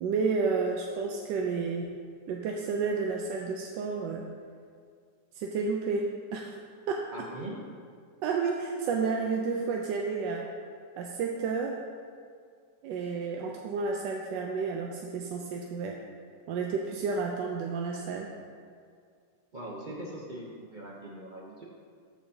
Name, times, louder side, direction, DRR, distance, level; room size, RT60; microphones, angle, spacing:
voice 1, 0.0-1.9 2.3-4.3 5.3-6.5 6.9-7.1 8.2-10.5 11.0-11.8 12.8-16.0 16.5-18.3, right 4 dB, 85° right, 1 dB, 1.2 m, -31 dB
voice 2, 7.1-7.6 19.5-21.6, right 1 dB, 60° right, -4 dB, 0.5 m, -41 dB
13.0 x 4.9 x 2.7 m, 2.1 s
omnidirectional pair, 1.9 m